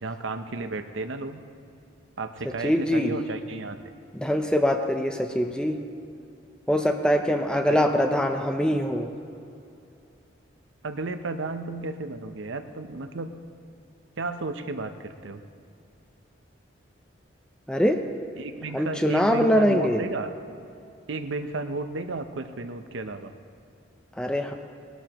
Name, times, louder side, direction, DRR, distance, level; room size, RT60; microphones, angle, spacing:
voice 1, 0.0-1.4 2.2-3.8 7.7-7.9 10.8-13.3 14.2-15.4 18.4-20.3 21.1-23.3, right 3 dB, 75° right, 8 dB, 0.8 m, -33 dB
voice 2, 2.6-3.1 4.1-5.8 6.7-9.1 17.7-18.0 18.7-20.0 24.2-24.5, equal, 5° left, 5 dB, 0.6 m, -23 dB
20.0 x 12.5 x 3.0 m, 2.6 s
head